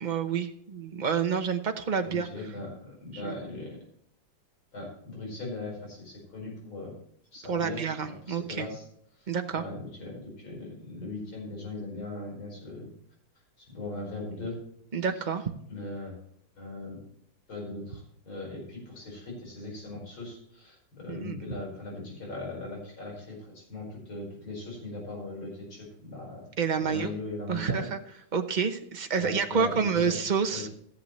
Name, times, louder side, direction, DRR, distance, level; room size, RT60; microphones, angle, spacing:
voice 1, 0.0-2.3 3.2-3.4 7.5-8.7 9.3-9.6 14.9-15.4 21.1-21.4 26.6-27.1 27.5-28.0 28.3-30.7, right 6 dB, 45° right, 6 dB, 0.6 m, -28 dB
voice 2, 2.0-3.8 4.7-6.9 7.3-8.8 9.2-9.3 9.5-12.9 13.6-14.6 15.0-15.1 15.7-16.1 16.6-17.0 17.5-26.5 26.8-27.9 29.2-30.1 30.5-30.7, left 2 dB, 80° left, -1 dB, 5.9 m, -39 dB
14.0 x 11.0 x 3.2 m, 0.68 s
omnidirectional pair, 2.2 m